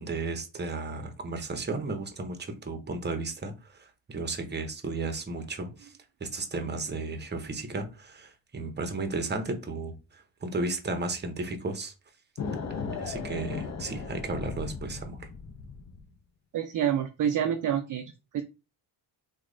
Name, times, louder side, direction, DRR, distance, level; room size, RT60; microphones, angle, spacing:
voice 1, 0.0-3.5 4.1-5.9 6.2-9.9 10.4-11.9 13.0-15.2, right 3 dB, 25° right, 0.8 m, -34 dB
sound 1, 12.4-16.1, left 5 dB, 40° left, 0.7 m, -36 dB
voice 2, 16.5-18.0 18.3-18.4, right 9 dB, 45° right, 0.5 m, -27 dB
3.0 x 2.3 x 3.8 m
cardioid pair, 85°, 44 cm